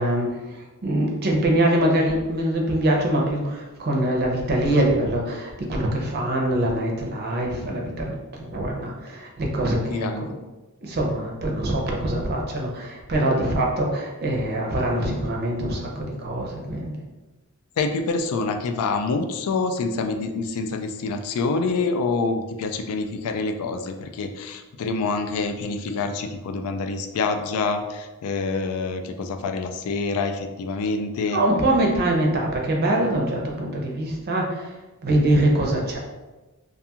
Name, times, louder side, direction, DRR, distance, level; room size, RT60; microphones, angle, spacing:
voice 1, 0.0-10.3 10.8-17.0 31.3-36.0, right 1 dB, 45° right, 0 dB, 0.5 m, -24 dB
voice 2, 9.9-10.3 17.8-31.4, left 4 dB, 75° left, 6 dB, 0.3 m, -26 dB
2.5 x 2.3 x 2.8 m, 1.1 s
head